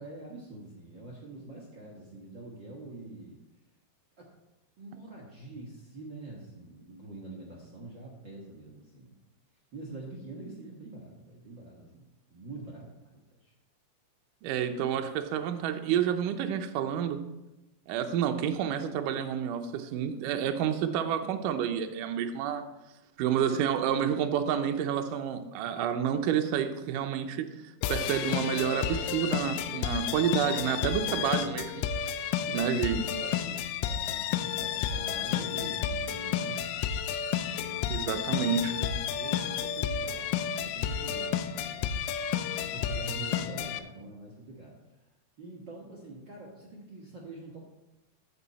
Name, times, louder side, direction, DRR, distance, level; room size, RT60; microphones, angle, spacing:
voice 1, 0.0-3.4 4.2-4.3 4.8-9.1 9.7-12.0 12.3-13.5 31.1-31.6 32.2-36.8 37.4-42.1 42.6-45.0 45.4-47.6, right 2 dB, 60° right, -3 dB, 1.2 m, -45 dB
voice 2, 14.4-17.2 17.9-22.6 23.2-27.4 27.9-31.8 32.5-33.0 37.9-39.0, right 8 dB, 75° right, 6 dB, 2.1 m, -29 dB
sound 1, 27.8-43.8, left 9 dB, 90° left, 2.5 m, -31 dB
14.0 x 6.1 x 4.1 m, 0.97 s
omnidirectional pair, 4.3 m